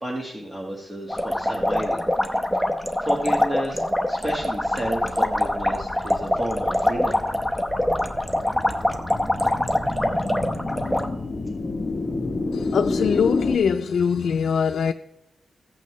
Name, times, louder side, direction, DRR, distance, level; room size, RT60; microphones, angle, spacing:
voice 1, 0.0-2.1 3.0-3.8 4.1-7.2, equal, 20° right, 1.4 m, -31 dB
sound 1, 1.1-11.1, left 1 dB, ahead, 0.8 m, -24 dB
sound 2, 4.2-13.6, left 3 dB, 30° left, 0.9 m, -30 dB
voice 2, 12.5-14.9, left 7 dB, 85° left, 0.4 m, -22 dB
15.0 x 7.7 x 3.1 m
wide cardioid pair, 150°, 0 cm